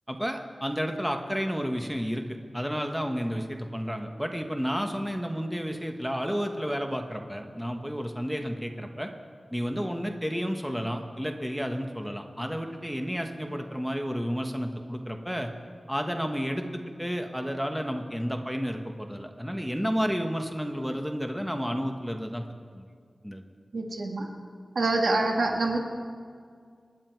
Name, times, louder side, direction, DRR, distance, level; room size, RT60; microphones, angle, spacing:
voice 1, 0.1-9.1 9.5-15.5 15.9-22.5 22.7-22.8 23.2-23.4, equal, ahead, 4 dB, 1.2 m, -31 dB
voice 2, 23.7-24.3 24.8-25.8, right 2 dB, 80° right, 2 dB, 1.9 m, -26 dB
26.0 x 10.0 x 4.6 m, 2.1 s
wide cardioid pair, 95°, 0 cm